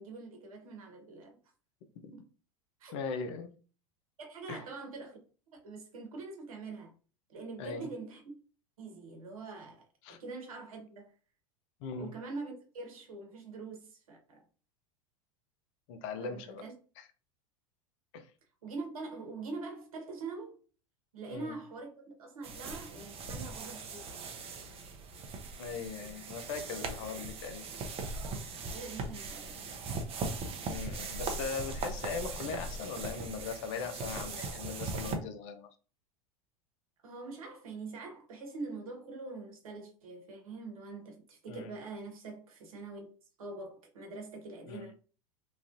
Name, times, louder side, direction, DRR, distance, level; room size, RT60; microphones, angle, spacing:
voice 1, 0.0-1.4 2.1-2.2 2.8-2.9 4.2-5.2 5.6-6.9 7.3-8.3 8.8-11.1 12.0-14.5 16.2-16.7 18.6-20.6 21.1-24.3 26.0-26.1 26.8-26.9 28.1-29.7 37.0-43.1 43.4-44.9, right 3 dB, 75° right, 1.1 m, -44 dB
voice 2, 2.9-3.5 4.5-4.6 7.6-7.9 10.0-10.2 11.8-12.1 15.9-16.6 17.0-17.1 18.1-18.2 21.3-21.5 25.6-27.6 30.7-35.7 41.5-41.7 44.7-44.9, left 5 dB, 60° left, 0.6 m, -39 dB
sound 1, 22.4-35.2, right 3 dB, 35° right, 0.7 m, -39 dB
3.0 x 2.4 x 2.5 m
hypercardioid pair, 85°, 18 cm